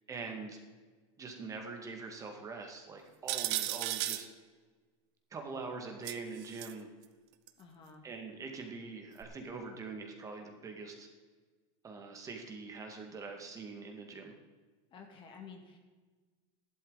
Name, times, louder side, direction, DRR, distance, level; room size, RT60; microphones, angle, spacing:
voice 1, 0.1-0.6 1.2-4.3 5.3-6.9 8.0-11.1 11.8-14.3, right 4 dB, 20° right, 2 dB, 2.0 m, -43 dB
sound 1, 3.3-4.2 6.0-6.7 7.5-7.6 9.2-9.3, right 15 dB, 55° right, 0.9 m, -35 dB
voice 2, 7.6-8.0 14.9-15.8, left 5 dB, 35° left, 4 dB, 2.1 m, -51 dB
13.0 x 11.5 x 4.0 m, 1.4 s
supercardioid pair, 130°, 15 cm